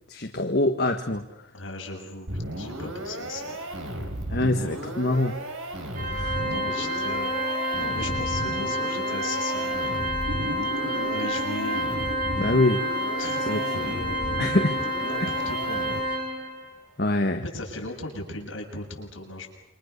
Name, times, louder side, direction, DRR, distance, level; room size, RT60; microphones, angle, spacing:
voice 1, 0.1-1.2 4.3-5.4 6.1-6.4 12.4-12.8 13.4-13.6 14.4-14.8 17.0-17.4, left 2 dB, 45° left, 5 dB, 1.6 m, -24 dB
voice 2, 1.5-2.3 2.6-3.6 4.4-4.7 6.5-7.3 7.7-10.1 10.8-11.8 13.2-14.5 15.0-15.9 17.5-19.5, left 2 dB, 65° left, 2 dB, 7.3 m, -37 dB
sound 1, 2.3-16.3, right 1 dB, 75° right, 5.8 m, -35 dB
Organ, 5.9-16.7, equal, 40° right, 4.5 m, -29 dB
sound 2, 10.2-15.5, equal, 90° right, 2.3 m, -39 dB
28.5 x 26.0 x 6.8 m, 0.88 s
head